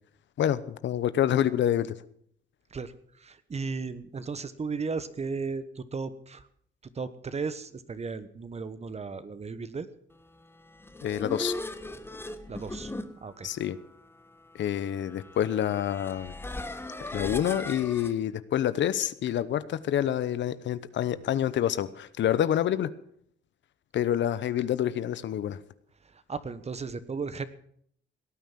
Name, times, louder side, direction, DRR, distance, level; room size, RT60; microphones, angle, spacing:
voice 1, 0.4-1.9 11.0-11.5 13.4-13.8 14.6-16.3 17.1-22.9 23.9-25.6, left 10 dB, 65° left, 15 dB, 0.9 m, -27 dB
voice 2, 2.7-6.5 6.8-9.9 12.5-12.9 13.2-13.5 26.0-27.5, right 4 dB, 35° right, 14 dB, 1.3 m, -35 dB
sound 1, 10.6-18.1, left 2 dB, 10° left, 1.5 m, -39 dB
17.5 x 9.2 x 7.5 m, 0.65 s
cardioid pair, 90°, 20 cm